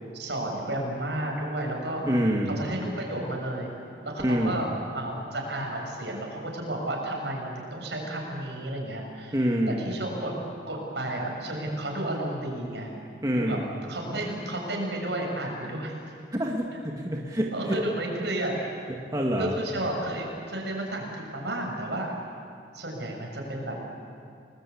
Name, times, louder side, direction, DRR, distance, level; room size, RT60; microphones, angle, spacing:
voice 1, 0.1-2.0 2.6-3.7 4.0-9.4 9.7-10.4 10.7-12.9 13.3-13.6 13.9-15.9 17.5-18.6 19.4-22.1 22.7-23.8, right 1 dB, 70° right, 0 dB, 7.0 m, -32 dB
voice 2, 2.0-2.6 4.2-4.7 9.3-9.9 13.2-13.7 16.3-17.8 19.1-19.6, equal, 20° right, -1 dB, 1.9 m, -26 dB
30.0 x 20.5 x 8.6 m, 2.4 s
head